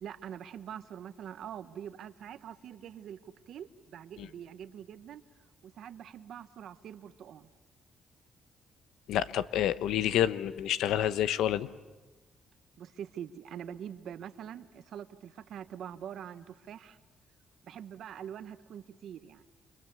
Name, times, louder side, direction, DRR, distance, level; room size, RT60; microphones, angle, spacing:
voice 1, 0.0-5.2 5.6-7.5 12.8-17.0 17.7-19.4, right 9 dB, 70° right, 12 dB, 1.1 m, -44 dB
voice 2, 9.1-11.7, left 11 dB, 85° left, 14 dB, 0.9 m, -28 dB
29.5 x 27.0 x 6.9 m, 1.2 s
cardioid pair, 90°, 0 cm